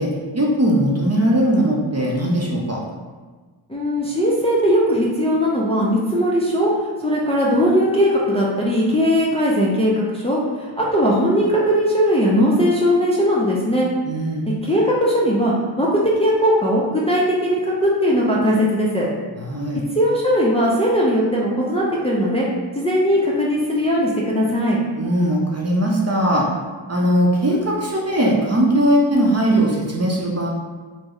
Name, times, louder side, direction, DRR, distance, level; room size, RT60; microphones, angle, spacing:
voice 1, 0.0-2.8 14.0-14.5 19.4-19.8 25.0-26.5 26.9-30.5, right 1 dB, 35° right, -3 dB, 0.6 m, -19 dB
voice 2, 3.7-6.7 7.0-13.9 14.6-19.1 19.9-22.5 22.8-24.8, equal, 15° left, -5 dB, 0.4 m, -19 dB
3.1 x 2.1 x 3.6 m, 1.4 s
wide cardioid pair, 65°, 48 cm